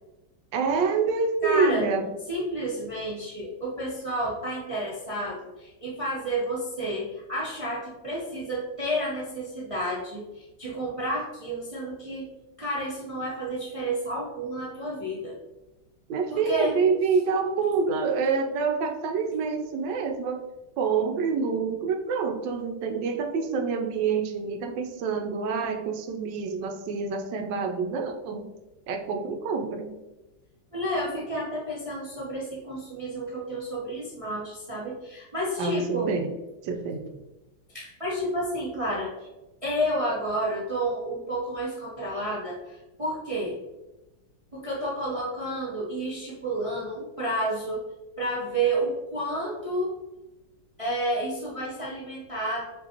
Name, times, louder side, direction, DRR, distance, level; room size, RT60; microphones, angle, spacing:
voice 1, 0.5-2.1 16.1-20.5 20.8-28.4 28.9-29.9 35.6-36.3 36.6-37.0, right 5 dB, 80° right, 4 dB, 1.3 m, -27 dB
voice 2, 1.4-1.9 2.3-12.3 12.6-15.4 16.3-16.7 30.7-36.1 37.7-39.3 39.6-43.6 44.5-47.8 48.2-50.0 50.8-52.7, right 1 dB, 45° right, -6 dB, 0.4 m, -30 dB
5.2 x 3.2 x 2.8 m, 1.0 s
omnidirectional pair, 1.9 m